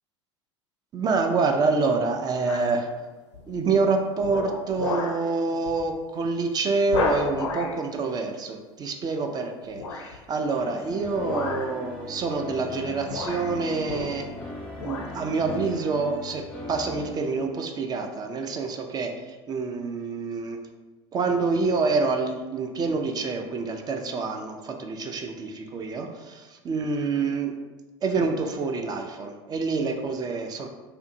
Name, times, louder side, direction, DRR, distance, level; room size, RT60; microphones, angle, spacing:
voice 1, 0.9-2.9 3.5-14.3 14.8-20.6 21.1-27.5 28.0-30.7, right 4 dB, 25° right, 4 dB, 0.3 m, -27 dB
sound 1, 2.5-2.8 3.3-3.7 4.2-5.3 5.7-5.8 6.2-6.3 6.9-7.8 9.7-10.2 11.1-11.8 12.7-12.8 13.1-14.4 14.7-15.2 15.7-15.8, left 4 dB, 75° left, 0.4 m, -32 dB
sound 2, 10.5-17.2, left 1 dB, 5° left, 0.6 m, -38 dB
2.6 x 2.5 x 2.6 m, 1.2 s
figure-of-eight pair, 75°, 15 cm